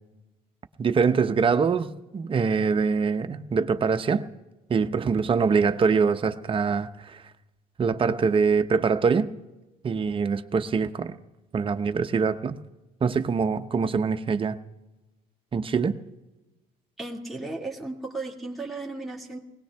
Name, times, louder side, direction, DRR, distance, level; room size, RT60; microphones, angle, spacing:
voice 1, 0.8-4.3 4.7-7.2 7.8-9.3 9.8-11.1 11.5-12.6 13.0-14.6 15.5-16.0, right 5 dB, 30° right, 0.8 m, -24 dB
voice 2, 17.0-19.4, right 2 dB, ahead, 2.1 m, -35 dB
20.0 x 18.0 x 3.5 m
cardioid pair, 110°, 17 cm